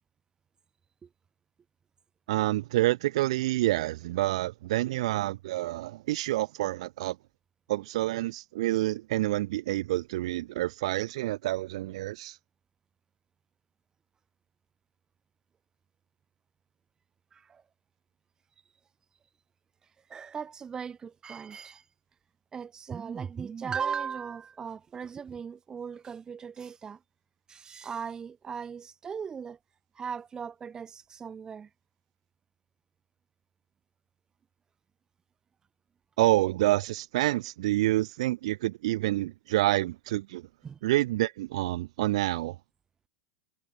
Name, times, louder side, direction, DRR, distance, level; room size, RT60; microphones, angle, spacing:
voice 1, 2.3-7.2 7.7-12.4 36.2-40.4 40.8-42.6, right 16 dB, 70° right, 2.8 m, -28 dB
voice 2, 17.3-17.6 20.1-21.8 22.5-27.0 27.5-29.6 29.9-31.7 40.6-40.8, right 6 dB, 20° right, 6.1 m, -38 dB
supercardioid pair, 125°, 3 cm